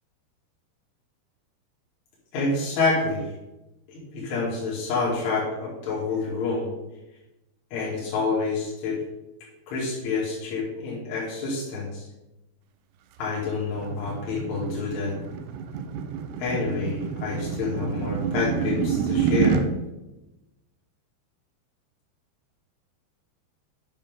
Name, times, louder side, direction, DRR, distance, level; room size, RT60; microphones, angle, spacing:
voice 1, 2.3-3.2 3.9-6.7 7.7-9.0 9.7-12.1 13.2-15.1 16.4-19.6, left 4 dB, 90° left, -6 dB, 5.0 m, -28 dB
sound 1, 13.2-19.7, right 7 dB, 85° right, 2.4 m, -28 dB
10.5 x 7.0 x 3.6 m, 0.98 s
omnidirectional pair, 5.4 m